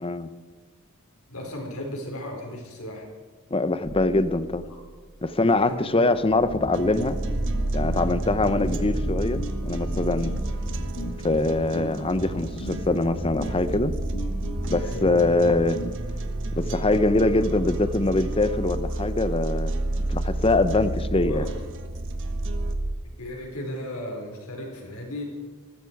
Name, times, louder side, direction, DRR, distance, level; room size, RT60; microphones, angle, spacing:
voice 1, 1.3-3.1 5.4-6.1 14.8-15.0 21.2-21.5 23.0-25.2, left 1 dB, 70° left, 1 dB, 4.8 m, -35 dB
voice 2, 3.5-4.6 5.2-7.2 7.7-10.3 11.2-13.9 14.7-15.8 16.6-21.4, left 2 dB, 25° left, 13 dB, 0.8 m, -23 dB
sound 1, 3.8-4.9 5.5-5.6 6.1-22.9, right 1 dB, 85° right, 1.4 m, -31 dB
sound 2, 6.5-16.0, equal, 90° left, 2.7 m, -35 dB
sound 3, 6.7-22.7, right 2 dB, 60° right, 1.3 m, -39 dB
20.0 x 15.0 x 4.8 m, 1.5 s
head